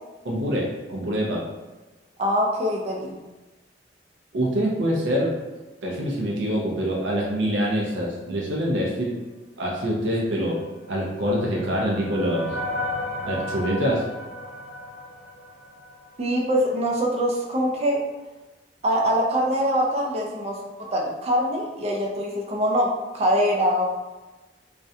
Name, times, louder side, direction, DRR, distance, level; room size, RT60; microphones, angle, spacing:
voice 1, 0.2-1.5 4.3-5.3 5.8-9.2 9.6-10.6 10.9-12.5 13.2-14.0, equal, 85° right, -3 dB, 0.5 m, -25 dB
voice 2, 2.2-3.2 16.2-18.0 18.8-23.8, equal, 35° right, -1 dB, 0.4 m, -23 dB
sound 1, 10.8-16.2, left 1 dB, 90° left, 0.4 m, -34 dB
2.4 x 2.1 x 2.6 m, 1.2 s
head